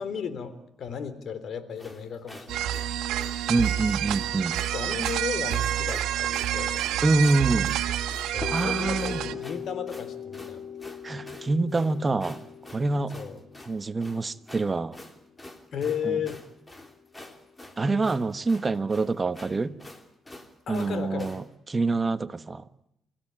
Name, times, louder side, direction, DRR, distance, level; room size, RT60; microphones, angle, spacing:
voice 1, 0.0-2.8 4.7-6.9 8.3-10.6 13.1-13.4 15.7-16.4 20.7-21.3, left 7 dB, 60° left, 13 dB, 3.4 m, -34 dB
sound 1, 1.8-21.5, left 1 dB, 15° left, 3.2 m, -47 dB
sound 2, 2.5-9.3, right 12 dB, 90° right, 1.8 m, -28 dB
voice 2, 3.5-4.6 7.0-7.8 8.5-9.2 11.0-12.5 12.7-13.2 13.7-15.0 16.0-16.2 17.8-19.7 20.7-21.4 21.7-22.6, right 3 dB, 25° right, 12 dB, 1.2 m, -26 dB
sound 3, 8.4-16.1, left 7 dB, 40° left, 2.8 m, -40 dB
29.0 x 15.5 x 8.9 m, 0.80 s
cardioid pair, 90°, 0 cm